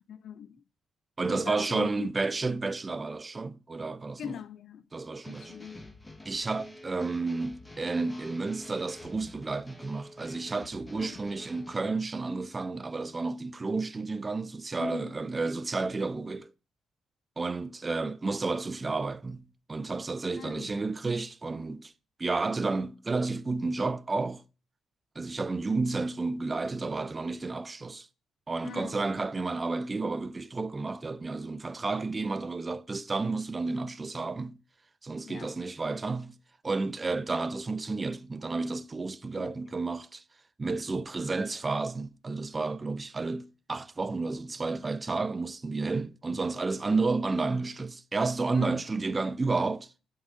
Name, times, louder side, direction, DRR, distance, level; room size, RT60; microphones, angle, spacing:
voice 1, 0.1-0.6 1.2-2.1 4.2-4.8 5.3-5.9 11.0-11.2 14.8-15.2 20.3-20.7 28.6-29.0 35.3-35.5 39.4-39.6 48.5-48.7, left 8 dB, 65° left, 0.3 m, -41 dB
voice 2, 1.2-4.2 4.9-5.5 6.3-16.5 17.4-21.9 22.2-24.4 25.2-28.1 28.5-34.6 35.0-36.3 36.6-40.2 40.6-49.9, right 3 dB, 25° right, 0.4 m, -31 dB
sound 1, 5.2-11.8, left 2 dB, 15° left, 0.9 m, -48 dB
7.4 x 3.8 x 6.0 m
cardioid pair, 90°, 0 cm